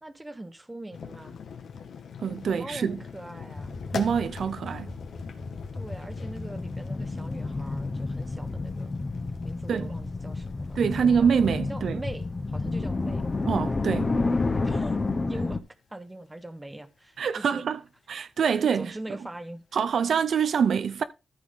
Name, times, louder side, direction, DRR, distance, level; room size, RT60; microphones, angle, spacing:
voice 1, 0.0-1.4 2.4-3.8 5.7-8.9 9.4-11.3 11.7-13.3 14.6-15.0 15.3-15.6 15.9-17.6 18.7-19.6, right 1 dB, 15° right, 1.2 m, -41 dB
sound 1, 0.9-13.4 13.7-13.9 14.4-14.5 14.8-15.0 15.9-16.0, left 6 dB, 80° left, 1.7 m, -43 dB
voice 2, 2.2-3.0 3.9-4.9 9.7-9.9 10.8-12.0 13.5-14.1 17.2-17.8 18.1-18.9 19.7-21.0, right 7 dB, 70° right, 0.6 m, -25 dB
sound 2, 3.6-15.6, left 3 dB, 25° left, 1.0 m, -31 dB
14.0 x 5.9 x 3.9 m
wide cardioid pair, 135°, 0 cm